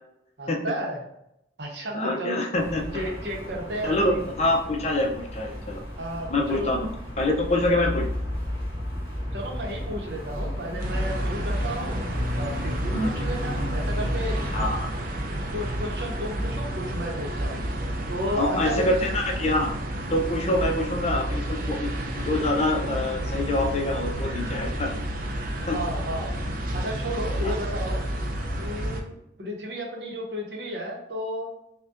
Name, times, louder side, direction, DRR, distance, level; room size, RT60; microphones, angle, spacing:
voice 1, 0.4-1.0 1.6-2.4 2.9-4.2 6.0-6.7 9.3-12.0 12.3-14.4 15.5-17.6 18.1-18.9 25.7-26.3 26.7-28.0 28.6-31.5, equal, 65° right, 0 dB, 0.8 m, -33 dB
voice 2, 1.9-2.8 3.8-5.8 6.3-6.9 7.2-8.1 12.9-13.2 14.5-14.9 18.4-19.7 20.1-21.9 22.2-24.9 25.7-25.8 27.4-27.5, left 1 dB, 35° left, 1 dB, 0.5 m, -25 dB
sound 1, 2.5-14.7, equal, 10° right, 1.1 m, -32 dB
sound 2, 10.8-29.0, right 1 dB, 50° right, 0.5 m, -30 dB
5.1 x 2.2 x 2.4 m, 0.79 s
head